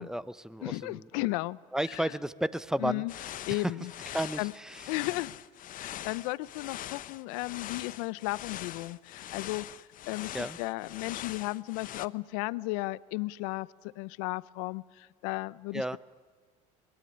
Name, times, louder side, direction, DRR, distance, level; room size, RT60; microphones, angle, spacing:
voice 1, 0.0-1.1 1.7-3.0 3.5-3.7 4.1-4.9 10.3-10.6 15.7-16.0, right 1 dB, 5° right, 17 dB, 0.9 m, -33 dB
voice 2, 0.6-1.6 1.9-2.1 2.8-3.1 3.5-3.9 4.4-4.5 4.9-5.4 5.7-9.7 10.1-15.8, left 21 dB, 80° left, 19 dB, 0.7 m, -34 dB
sound 1, 3.1-12.1, left 12 dB, 50° left, 0.8 m, -42 dB
23.0 x 21.0 x 9.9 m, 1.4 s
supercardioid pair, 90°, 17 cm